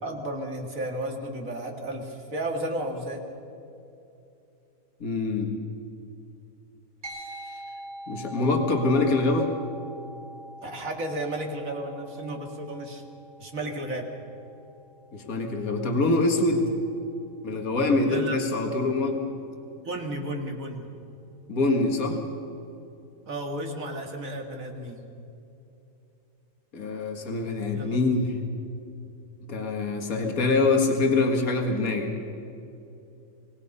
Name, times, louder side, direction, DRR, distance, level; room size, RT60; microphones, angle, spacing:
voice 1, 0.0-3.2 10.6-13.0 13.4-14.1 18.1-18.4 19.8-20.9 23.3-25.0 27.7-28.0, right 1 dB, 65° right, 2 dB, 2.6 m, -33 dB
voice 2, 5.0-5.5 7.1-7.3 8.1-9.5 15.1-16.7 17.4-19.2 21.5-22.2 26.7-28.4 29.5-32.1, left 3 dB, 70° left, 3 dB, 2.3 m, -24 dB
sound 1, 7.0-16.7, equal, 85° right, 4.9 m, -45 dB
25.5 x 19.5 x 5.5 m, 2.8 s
omnidirectional pair, 1.5 m